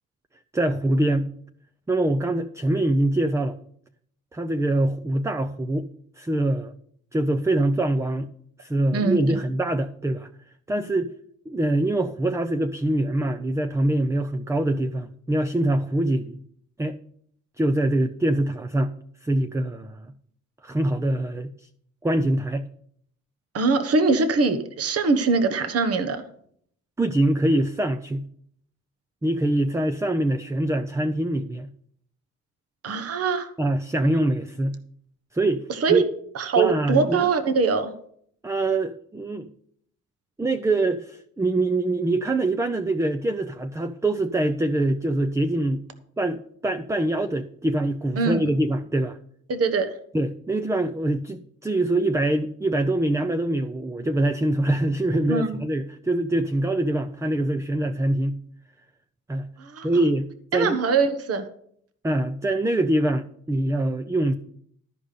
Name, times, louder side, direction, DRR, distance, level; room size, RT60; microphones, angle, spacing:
voice 1, 0.5-1.3 1.9-3.6 4.3-5.9 6.2-6.7 7.1-8.3 8.6-10.3 10.7-11.1 11.5-16.4 16.8-17.0 17.6-18.9 19.2-20.1 20.6-21.5 22.0-22.7 27.0-28.3 29.2-31.7 33.6-34.8 35.3-36.1 36.6-37.3 38.4-39.5 40.4-45.8 46.2-49.2 50.1-58.4 59.3-59.5 59.8-60.8 62.0-64.3, right 1 dB, 10° right, 9 dB, 0.6 m, -24 dB
voice 2, 23.5-26.2 32.8-33.5 35.7-36.0 36.3-37.9 48.2-48.5 49.5-49.9 55.3-55.6 59.6-59.9 60.5-61.5, right 4 dB, 50° right, 10 dB, 1.2 m, -22 dB
13.0 x 5.1 x 6.7 m, 0.65 s
cardioid pair, 90°, 30 cm